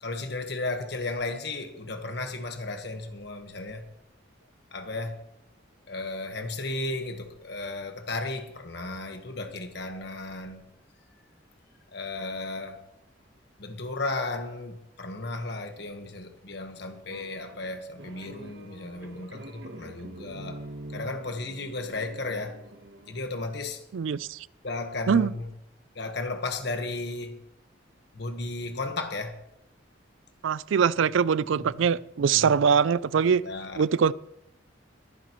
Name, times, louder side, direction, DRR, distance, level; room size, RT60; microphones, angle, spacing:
voice 1, 0.0-3.9 4.7-5.2 5.9-10.6 11.9-12.8 13.6-20.6 20.9-22.6 23.1-23.8 24.6-25.5 25.9-27.4 28.1-29.4 31.6-31.7 32.4-32.5 33.2-33.8, left 2 dB, 60° left, 1.4 m, -34 dB
sound 1, 17.1-23.2, right 1 dB, 65° right, 1.3 m, -45 dB
voice 2, 23.9-24.4 25.1-25.3 30.4-33.4 33.8-34.1, right 6 dB, 85° right, 0.4 m, -23 dB
23.0 x 10.0 x 3.1 m
head